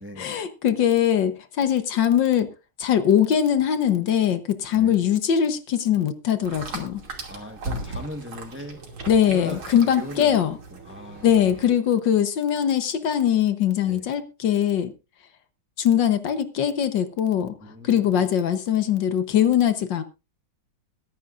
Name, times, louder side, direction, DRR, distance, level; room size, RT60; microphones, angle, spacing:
voice 1, 0.0-2.5 2.8-7.0 9.1-10.6 11.2-14.9 15.8-17.5 17.8-20.0, left 9 dB, 65° left, 1.6 m, -21 dB
voice 2, 4.7-5.0 7.3-8.8 9.2-10.4 10.7-11.7 13.9-14.1 17.6-18.2, left 1 dB, 5° right, 1.1 m, -39 dB
sound 1, 6.4-11.7, right 2 dB, 80° right, 3.5 m, -37 dB
22.0 x 10.5 x 2.5 m
omnidirectional pair, 2.2 m